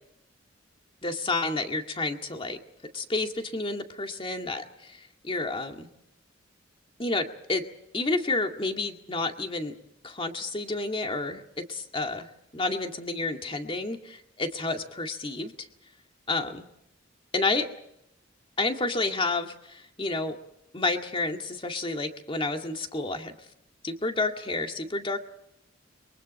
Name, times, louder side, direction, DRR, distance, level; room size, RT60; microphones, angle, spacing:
voice 1, 1.0-2.6 2.9-5.0 5.2-5.9 7.0-7.6 7.9-9.7 10.0-12.3 12.5-15.5 16.3-16.6 17.3-17.7 18.6-20.4 20.7-23.3 23.8-25.2, left 3 dB, 30° left, 4 dB, 2.1 m, -30 dB
30.0 x 23.5 x 4.4 m, 0.78 s
head